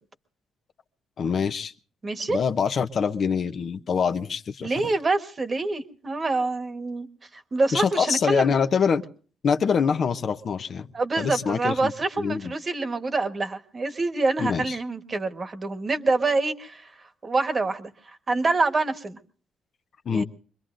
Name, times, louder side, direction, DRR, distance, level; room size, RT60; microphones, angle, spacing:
voice 1, 1.2-1.7 2.3-4.9 7.7-9.0 9.4-10.9 11.2-11.9 12.2-12.5 14.4-14.8 20.1-20.2, left 6 dB, 55° left, 10 dB, 0.7 m, -25 dB
voice 2, 2.0-2.4 4.6-7.1 7.3-8.5 10.9-16.9 17.2-19.2 20.1-20.2, right 3 dB, 35° right, 8 dB, 1.3 m, -26 dB
24.5 x 22.0 x 2.5 m, 0.42 s
cardioid pair, 90°, 0 cm